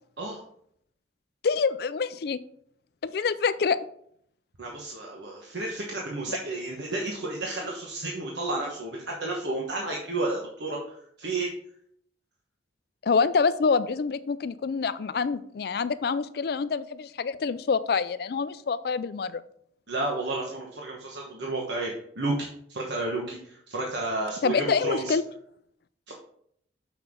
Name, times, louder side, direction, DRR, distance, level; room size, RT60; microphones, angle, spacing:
voice 1, 1.4-2.4 3.0-3.8 6.3-6.4 13.0-19.4 24.4-25.2, left 5 dB, 55° left, 14 dB, 0.4 m, -26 dB
voice 2, 4.6-10.8 11.2-11.5 19.9-25.1 26.1-26.2, right 2 dB, 70° right, -1 dB, 1.1 m, -31 dB
6.9 x 6.0 x 3.7 m, 0.68 s
head